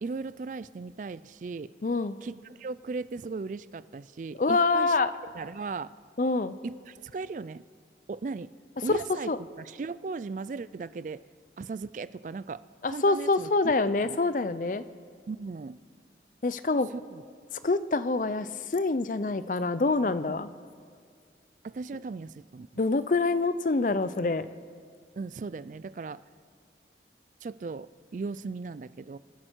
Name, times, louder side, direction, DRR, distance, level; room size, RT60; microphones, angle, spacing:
voice 1, 0.0-1.7 2.2-5.9 6.6-7.6 8.1-8.5 8.8-11.2 11.6-13.7 14.0-14.2 15.3-15.8 16.9-17.2 21.6-22.7 25.2-26.2 27.4-29.2, right 4 dB, 45° right, 17 dB, 0.3 m, -37 dB
voice 2, 1.8-2.2 4.4-5.1 6.2-6.6 8.9-9.0 9.3-9.4 12.8-14.8 16.4-16.9 17.6-20.5 22.8-24.5, left 3 dB, 45° left, 13 dB, 0.5 m, -26 dB
26.0 x 11.0 x 4.6 m, 2.1 s
head